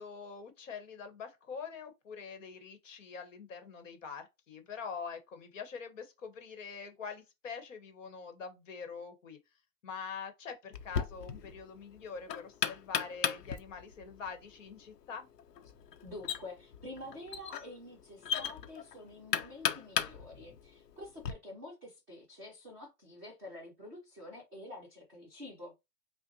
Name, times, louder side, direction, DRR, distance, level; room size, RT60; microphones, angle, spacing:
voice 1, 0.0-9.4 9.8-15.3, left 5 dB, 50° left, 1.2 m, -44 dB
Knock, 10.7-21.3, left 8 dB, 80° left, 0.8 m, -37 dB
voice 2, 16.0-25.9, left 1 dB, 5° right, 0.5 m, -48 dB
5.6 x 2.2 x 2.7 m
hypercardioid pair, 170°, 47 cm